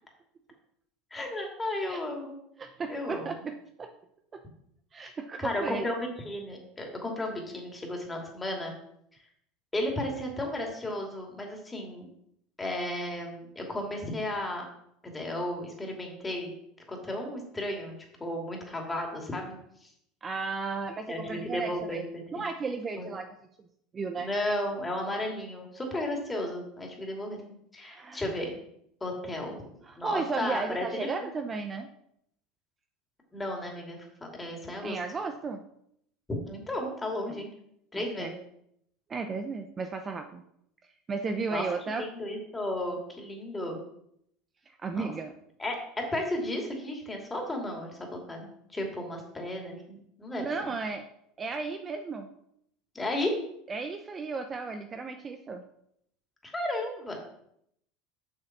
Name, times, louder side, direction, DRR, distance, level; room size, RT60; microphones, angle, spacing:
voice 1, 1.1-2.4 2.9-3.3 5.4-8.7 9.7-12.1 12.6-14.7 15.1-16.5 16.9-17.9 18.2-19.5 19.8-19.9 21.1-22.0 23.0-23.1 24.2-27.4 27.7-28.6 29.0-29.6 30.0-31.1 33.3-35.0 36.3-37.5 37.9-38.3 41.5-43.8 44.9-45.1 45.6-45.8 46.1-50.5 52.9-53.4 56.4-57.2, left 1 dB, 15° left, 1 dB, 2.7 m, -34 dB
voice 2, 2.6-3.9 4.3-4.4 4.9-5.9 20.2-22.0 22.3-23.3 23.9-24.3 27.8-28.2 29.8-31.9 34.8-35.6 37.3-37.4 37.9-38.3 39.1-40.4 41.1-42.1 44.8-45.3 50.4-51.1 51.4-52.3 53.7-55.6, right 4 dB, 25° right, 6 dB, 0.7 m, -34 dB
7.4 x 6.4 x 6.0 m, 0.73 s
supercardioid pair, 120°, 0 cm